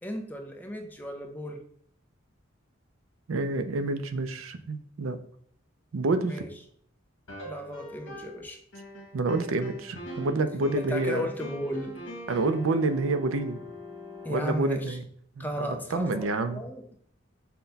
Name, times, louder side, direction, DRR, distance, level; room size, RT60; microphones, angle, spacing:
voice 1, 0.0-1.6 6.3-6.5 7.4-8.6 10.9-12.0 14.2-15.0 15.4-17.0, equal, 10° left, 4 dB, 0.4 m, -35 dB
voice 2, 3.3-5.2 5.9-6.4 9.1-11.3 12.3-13.6 14.3-15.0 15.4-16.6, right 2 dB, 85° right, 9 dB, 0.5 m, -28 dB
sound 1, 7.3-8.4 8.7-14.6, left 1 dB, 75° left, 1.2 m, -41 dB
5.8 x 2.2 x 4.0 m, 0.64 s
head